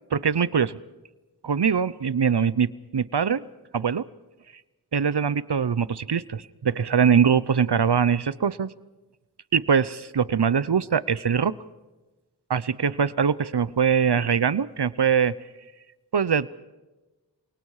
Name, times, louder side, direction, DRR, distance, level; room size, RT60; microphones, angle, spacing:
voice 1, 0.1-0.8 1.4-3.4 3.7-4.0 4.9-8.7 9.5-11.5 12.5-15.3 16.1-16.5, right 7 dB, 65° right, 18 dB, 0.8 m, -22 dB
28.5 x 24.5 x 4.9 m, 1.1 s
wide cardioid pair, 50°, 43 cm